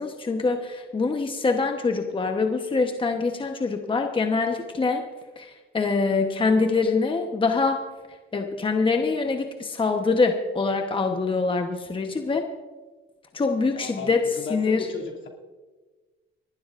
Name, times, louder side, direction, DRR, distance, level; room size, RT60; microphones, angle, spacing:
voice 1, 0.0-5.0 5.4-7.8 8.3-12.4 13.3-14.2 14.5-14.9, left 4 dB, 25° left, 4 dB, 1.1 m, -24 dB
voice 2, 13.7-15.3, left 4 dB, 75° left, -1 dB, 2.8 m, -36 dB
29.0 x 12.0 x 2.6 m, 1.3 s
cardioid pair, 90°, 20 cm